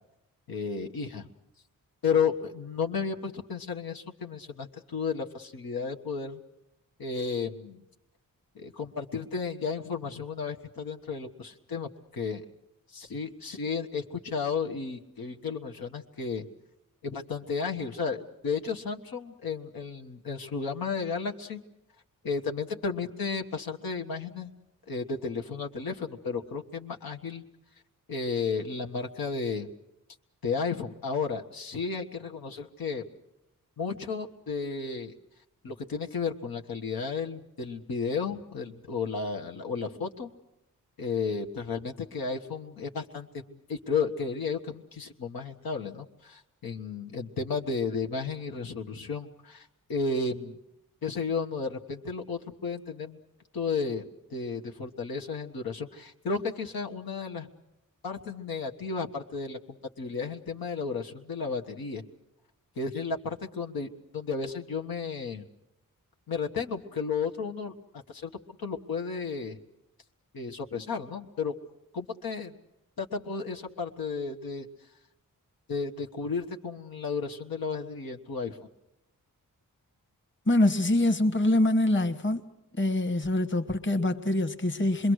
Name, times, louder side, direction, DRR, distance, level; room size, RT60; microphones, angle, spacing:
voice 1, 0.5-1.3 2.0-6.4 7.0-7.8 8.5-12.4 12.9-16.4 17.0-21.6 22.2-24.5 24.9-27.4 28.1-29.7 30.4-33.0 33.8-35.1 35.6-40.3 41.0-50.6 51.0-53.2 53.5-57.5 58.0-62.0 62.8-65.5 66.3-68.3 68.6-69.6 70.3-71.5 71.9-72.5 73.0-74.7 75.7-78.6, left 5 dB, 90° left, 1.5 m, -33 dB
voice 2, 80.5-82.4 82.8-85.1, left 1 dB, 35° left, 1.4 m, -24 dB
26.5 x 22.0 x 6.4 m
wide cardioid pair, 85°, 35 cm